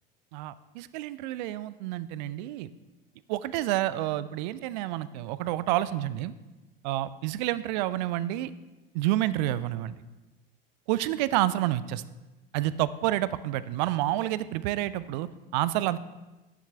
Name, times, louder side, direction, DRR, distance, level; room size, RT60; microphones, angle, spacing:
voice 1, 0.3-2.7 3.3-6.3 6.8-8.5 8.9-10.0 10.9-12.0 12.5-16.0, right 14 dB, 50° right, 17 dB, 0.5 m, -29 dB
11.0 x 10.5 x 3.3 m, 1.1 s
figure-of-eight pair, 70°, 29 cm